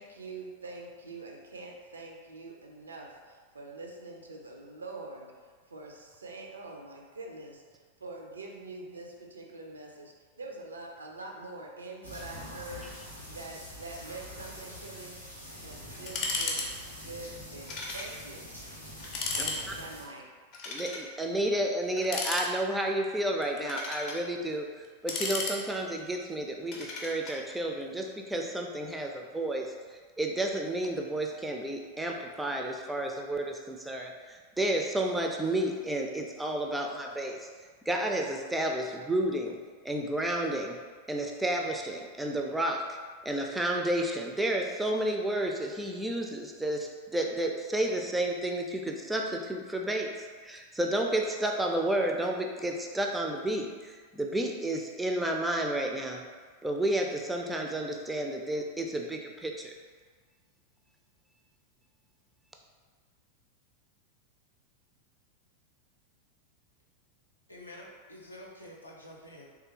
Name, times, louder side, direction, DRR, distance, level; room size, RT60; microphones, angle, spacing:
voice 1, 0.0-5.3 5.7-15.2 15.6-18.5 19.3-20.3, right 2 dB, 75° right, 1 dB, 0.4 m, -45 dB
sound 1, 12.0-20.0, equal, 90° right, 1.1 m, -45 dB
sound 2, 16.1-16.7 16.9-17.0 17.7-18.1 18.5-18.6 19.0-19.6 20.5-21.1 22.0-22.8 23.4-24.2 24.8-26.0 26.7-27.4, left 3 dB, 40° left, 0.6 m, -34 dB
voice 2, 20.7-29.7 30.2-37.5 37.9-39.6 39.8-40.8 41.1-42.8 43.2-56.2 56.6-59.7, right 1 dB, 5° right, 1 dB, 0.3 m, -31 dB
voice 3, 67.5-69.5, left 1 dB, 85° left, -3 dB, 0.5 m, -48 dB
3.2 x 2.4 x 2.9 m, 1.5 s
figure-of-eight pair, 90°, 0 cm